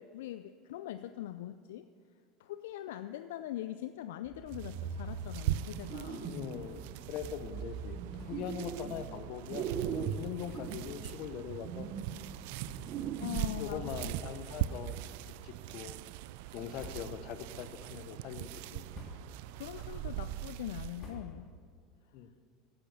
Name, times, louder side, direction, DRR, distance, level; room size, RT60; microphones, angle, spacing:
voice 1, 0.0-1.9 2.4-6.4 13.2-13.9 19.6-21.5, left 13 dB, 80° left, 11 dB, 0.3 m, -42 dB
sound 1, 4.3-6.7 7.2-9.2 9.5-14.3, right 7 dB, 50° right, 0.9 m, -40 dB
sound 2, 4.5-21.1, right 14 dB, 70° right, 0.3 m, -41 dB
sound 3, 5.7-6.2 6.6-6.7 7.0-7.1 8.1-8.6 9.3-9.4 10.1-10.2 10.4-11.0 11.5-11.6 12.6-13.3 13.6-13.8 14.6-15.2 15.7-16.1 16.6-17.5 17.8-18.3 18.7-19.5 19.9-21.7, left 2 dB, 35° left, 2.9 m, -52 dB
voice 2, 6.3-11.9 13.6-15.0 15.4-16.0 16.5-18.8 19.7-20.0 22.1-22.3, left 8 dB, 60° left, 11 dB, 0.8 m, -42 dB
10.5 x 8.7 x 7.0 m, 2.1 s
hypercardioid pair, 95°, 0 cm